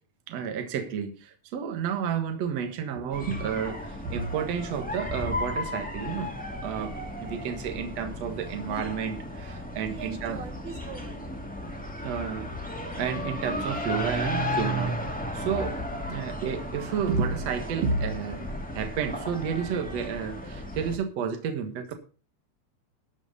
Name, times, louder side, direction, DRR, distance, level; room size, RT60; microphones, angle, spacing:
voice 1, 0.3-6.3 6.6-10.4 12.0-12.5 12.9-15.8 16.0-21.9, right 6 dB, 65° right, 6 dB, 2.5 m, -31 dB
sound 1, 3.1-21.0, left 1 dB, 5° left, 1.4 m, -34 dB
voice 2, 9.9-11.3 21.4-21.5, right 6 dB, 80° right, 5 dB, 3.4 m, -42 dB
12.5 x 6.3 x 6.6 m, 0.36 s
omnidirectional pair, 3.4 m